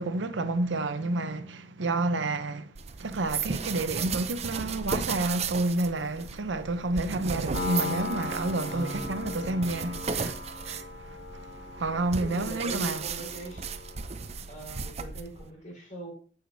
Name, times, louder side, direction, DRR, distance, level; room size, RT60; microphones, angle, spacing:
voice 1, 0.0-13.0, right 2 dB, 80° right, 0.7 m, -30 dB
sound 1, 2.8-15.5, right 5 dB, 35° right, 0.5 m, -35 dB
Piano, 7.5-14.3, left 2 dB, 85° left, 2.0 m, -38 dB
voice 2, 8.7-9.3 12.2-13.6 14.5-16.1, right 1 dB, 40° left, 4.4 m, -40 dB
14.0 x 5.0 x 2.7 m
head